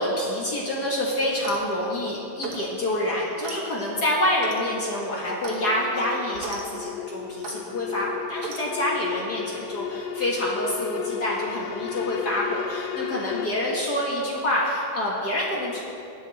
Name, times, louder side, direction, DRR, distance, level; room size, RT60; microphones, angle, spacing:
voice 1, 0.0-15.8, left 1 dB, 45° left, -4 dB, 1.3 m, -27 dB
Clock, 1.3-1.7 2.4-2.7 3.4-3.6 4.4-4.7 5.4-5.6 6.3-6.6 7.4-7.6 8.4-8.6, right 4 dB, 60° right, 1.9 m, -36 dB
sound 1, 3.4-13.5, left 10 dB, 85° left, 1.6 m, -35 dB
19.0 x 7.3 x 4.1 m, 2.5 s
omnidirectional pair, 3.7 m